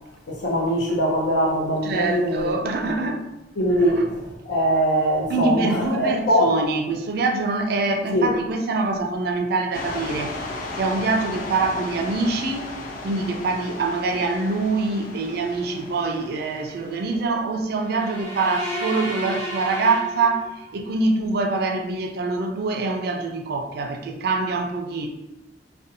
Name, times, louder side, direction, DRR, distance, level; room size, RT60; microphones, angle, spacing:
voice 1, 0.3-3.0 3.6-6.5 8.1-8.4, equal, 90° left, -2 dB, 0.7 m, -22 dB
voice 2, 1.8-3.2 5.3-10.3 10.8-12.8 13.0-25.1, right 3 dB, 60° right, 4 dB, 0.4 m, -24 dB
sound 1, 9.7-17.3, left 2 dB, 50° left, 0.4 m, -35 dB
sound 2, 17.8-20.8, right 1 dB, 15° left, 0.7 m, -32 dB
2.5 x 2.2 x 2.6 m, 0.95 s
head